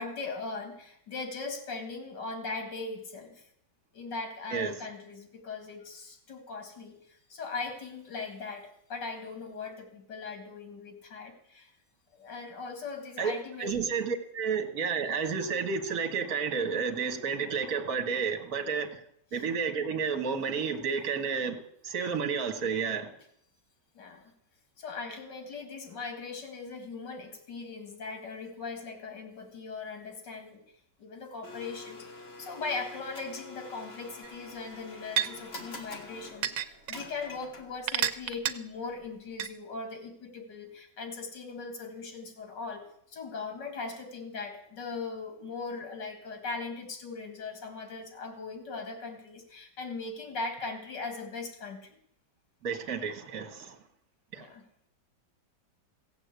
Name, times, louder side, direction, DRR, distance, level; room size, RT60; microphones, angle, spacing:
voice 1, 0.0-3.4 3.9-11.7 12.1-13.8 23.9-24.3 24.8-30.6 31.0-32.1 32.4-51.9 54.3-54.6, left 4 dB, 75° left, 5 dB, 2.9 m, -39 dB
voice 2, 13.6-19.0 19.3-23.1 52.6-53.8 54.3-54.5, right 6 dB, 60° right, 5 dB, 2.0 m, -31 dB
Domestic sounds home sounds, 31.4-37.9, left 3 dB, 35° left, 1.7 m, -46 dB
sound 1, 34.2-34.3 35.2-35.3 36.4-37.0 37.9-38.5 39.4-39.5, right 10 dB, 85° right, 1.4 m, -28 dB
16.0 x 8.1 x 8.2 m, 0.69 s
omnidirectional pair, 1.9 m